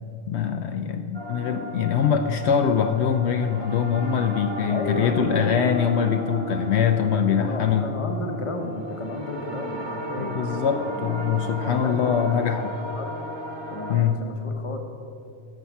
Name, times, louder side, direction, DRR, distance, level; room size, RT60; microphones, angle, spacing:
voice 1, 0.3-7.9 10.2-12.8 13.9-14.3, left 7 dB, 70° left, 6 dB, 0.8 m, -23 dB
sound 1, 1.1-14.0, equal, 25° right, 1.4 m, -34 dB
voice 2, 4.7-5.9 7.4-10.6 10.9-12.6 12.9-13.1 13.7-14.8, left 1 dB, 30° left, 4 dB, 1.0 m, -33 dB
13.5 x 5.8 x 7.1 m, 2.5 s
omnidirectional pair, 1.2 m